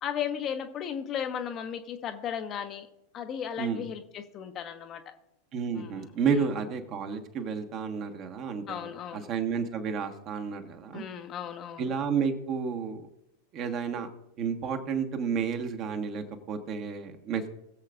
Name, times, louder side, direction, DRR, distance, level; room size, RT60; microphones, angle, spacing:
voice 1, 0.0-2.9 3.1-5.0 5.7-6.5 8.7-9.3 10.9-11.9, left 8 dB, 30° left, 7 dB, 0.9 m, -35 dB
voice 2, 5.5-11.0 11.8-13.0 13.5-14.1 14.4-17.5, right 6 dB, 35° right, 6 dB, 1.4 m, -31 dB
21.0 x 7.7 x 2.6 m, 0.83 s
figure-of-eight pair, 90°, 0 cm